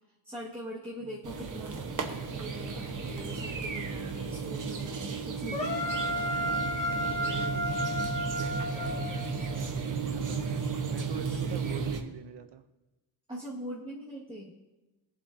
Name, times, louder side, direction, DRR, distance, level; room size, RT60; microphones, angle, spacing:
voice 1, 0.2-6.0 11.2-11.4 13.3-14.5, equal, 15° right, -5 dB, 1.6 m, -42 dB
sound 1, 1.2-12.0, right 5 dB, 50° right, 1.0 m, -34 dB
sound 2, 5.5-9.6, equal, 15° left, 1.5 m, -32 dB
voice 2, 7.0-7.8 8.0-10.6 10.9-12.6, right 8 dB, 85° right, 9 dB, 0.7 m, -44 dB
21.5 x 7.7 x 2.6 m, 1.1 s
wide cardioid pair, 170°, 39 cm